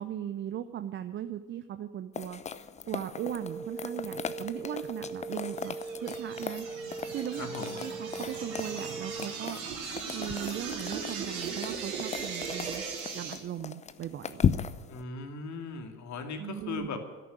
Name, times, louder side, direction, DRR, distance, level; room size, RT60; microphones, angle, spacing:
voice 1, 0.0-2.4 2.9-5.7 6.0-6.7 7.1-7.5 7.8-9.6 10.1-12.8 13.1-14.4 16.4-17.0, right 10 dB, 25° right, 11 dB, 0.6 m, -38 dB
sound 1, 2.1-15.0, left 7 dB, 15° left, 0.6 m, -37 dB
sound 2, 3.2-9.3, right 4 dB, 80° right, 3.8 m, -40 dB
sound 3, 5.3-13.3, right 5 dB, 65° right, 3.9 m, -38 dB
voice 2, 7.3-7.8 14.9-17.0, left 4 dB, 40° left, 5 dB, 2.4 m, -38 dB
13.0 x 11.0 x 9.6 m, 1.3 s
figure-of-eight pair, 70°, 44 cm